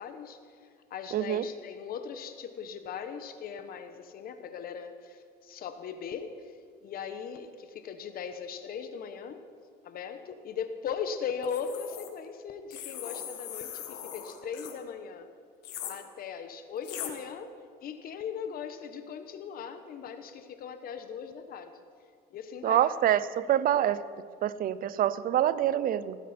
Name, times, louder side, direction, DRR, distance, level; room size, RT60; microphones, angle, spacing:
voice 1, 0.0-9.4 9.8-15.3 15.9-21.8 22.3-22.9, left 7 dB, 60° left, 9 dB, 1.2 m, -39 dB
voice 2, 1.1-1.4 22.6-24.0 24.4-26.2, right 11 dB, 60° right, 16 dB, 0.7 m, -26 dB
sound 1, 11.4-12.1 12.7-14.8 15.6-15.9 16.8-17.1, left 10 dB, 90° left, 1.9 m, -40 dB
16.5 x 15.5 x 4.4 m, 2.1 s
cardioid pair, 110°, 17 cm